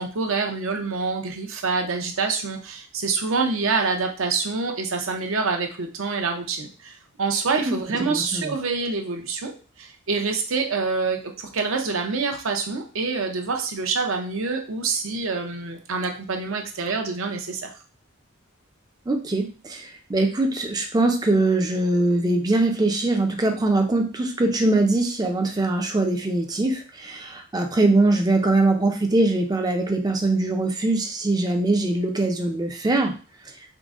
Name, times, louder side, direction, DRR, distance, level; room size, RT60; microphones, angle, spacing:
voice 1, 0.0-9.5 9.8-17.7, right 4 dB, 70° right, 3 dB, 0.6 m, -26 dB
voice 2, 8.1-8.6 19.1-33.1, right 2 dB, 20° right, 4 dB, 0.4 m, -22 dB
3.8 x 2.1 x 3.6 m, 0.37 s
head